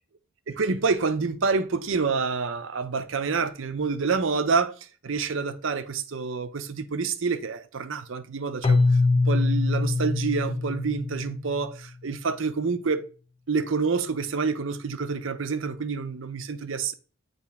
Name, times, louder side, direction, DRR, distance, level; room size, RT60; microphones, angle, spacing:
voice 1, 0.5-4.7 5.0-8.8 9.1-13.0 13.5-16.9, right 4 dB, 65° right, 0.6 m, -27 dB
Keyboard (musical), 8.6-11.6, left 3 dB, 25° left, 0.4 m, -23 dB
8.4 x 3.3 x 4.0 m
head